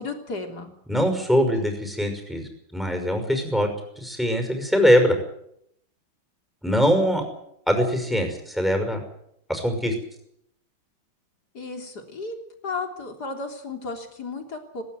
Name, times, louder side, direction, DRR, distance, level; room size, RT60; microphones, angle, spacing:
voice 1, 0.0-0.7 1.5-1.6 11.5-12.4 12.6-14.8, left 3 dB, 50° left, 5 dB, 3.9 m, -34 dB
voice 2, 0.9-5.2 6.6-7.2 7.7-9.0 9.5-9.9, equal, ahead, 5 dB, 5.7 m, -22 dB
18.5 x 18.5 x 9.4 m, 0.73 s
omnidirectional pair, 2.2 m